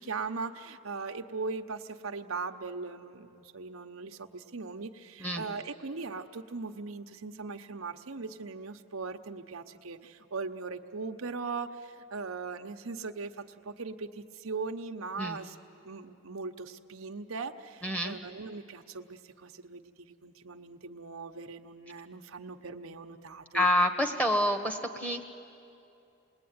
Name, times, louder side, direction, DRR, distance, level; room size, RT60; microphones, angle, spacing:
voice 1, 0.0-15.6 15.8-23.7, right 4 dB, 85° right, 5 dB, 1.0 m, -39 dB
voice 2, 17.8-18.2 23.5-25.2, left 1 dB, 5° left, 5 dB, 1.3 m, -27 dB
28.0 x 20.5 x 9.5 m, 2.7 s
head